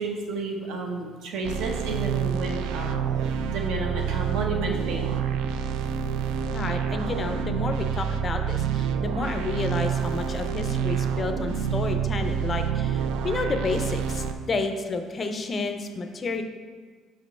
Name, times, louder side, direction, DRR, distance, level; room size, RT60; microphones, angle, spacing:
voice 1, 0.0-5.2, right 3 dB, 70° right, 2 dB, 1.0 m, -31 dB
sound 1, 1.4-14.3, right 7 dB, 90° right, 0.4 m, -27 dB
voice 2, 6.5-16.4, left 3 dB, 25° left, 6 dB, 0.4 m, -30 dB
5.6 x 5.3 x 4.2 m, 1.5 s
cardioid pair, 170°, 0 cm